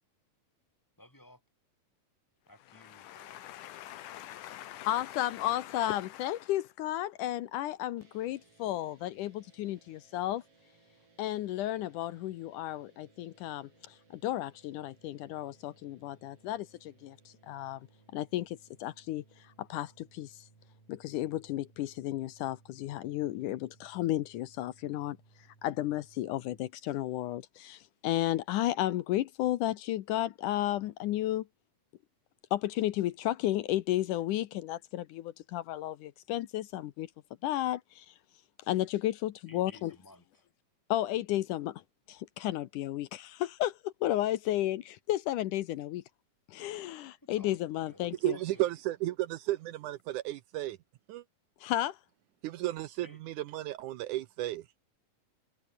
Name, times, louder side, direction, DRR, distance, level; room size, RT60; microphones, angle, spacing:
voice 1, 1.0-1.4 2.5-3.6 39.5-40.5 47.2-47.6 47.9-48.7 53.0-53.2, left 1 dB, 5° left, 2.6 m, -56 dB
voice 2, 3.0-10.4 11.2-17.9 18.1-20.5 20.9-25.2 25.6-31.5 32.5-37.1 37.4-38.1 38.7-40.0 40.9-41.8 42.1-46.0 46.5-48.4 51.6-52.0, left 14 dB, 75° left, 2.2 m, -33 dB
sound 1, 8.0-26.7, right 4 dB, 40° right, 6.0 m, -64 dB
voice 3, 48.2-50.8 51.1-51.2 52.4-54.6, right 15 dB, 75° right, 2.0 m, -33 dB
omnidirectional pair, 3.9 m